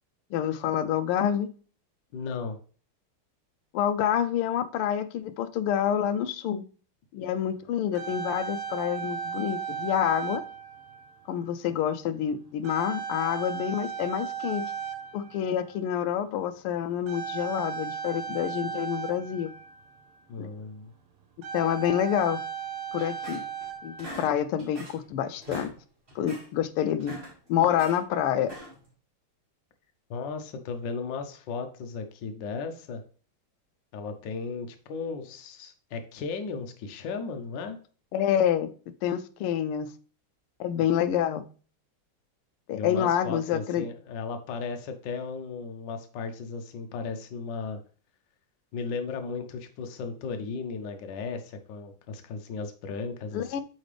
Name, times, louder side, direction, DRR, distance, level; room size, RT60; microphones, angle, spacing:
voice 1, 0.3-1.5 3.7-6.6 7.1-10.4 11.3-14.7 15.1-19.5 20.4-20.5 21.5-22.4 22.9-23.4 23.8-25.7 26.1-27.2 27.5-28.5 38.1-38.7 39.0-39.9 40.6-41.4 42.7-43.8 53.3-53.6, left 10 dB, 85° left, 12 dB, 1.5 m, -27 dB
voice 2, 2.1-2.6 20.3-20.9 30.1-33.0 33.9-37.8 42.7-47.8 48.7-53.6, left 4 dB, 65° left, 6 dB, 1.4 m, -35 dB
sound 1, 7.5-7.6 7.7-11.3 12.0-12.2 12.6-15.9 17.1-20.1 20.8-20.9 21.2-24.3, right 6 dB, 85° right, 1.7 m, -36 dB
sound 2, 23.0-23.7 24.0-25.1 25.4-25.7 26.1-26.5 26.9-28.0 28.4-28.9, right 1 dB, 25° right, 2.2 m, -43 dB
8.2 x 4.0 x 3.3 m, 0.40 s
omnidirectional pair, 2.4 m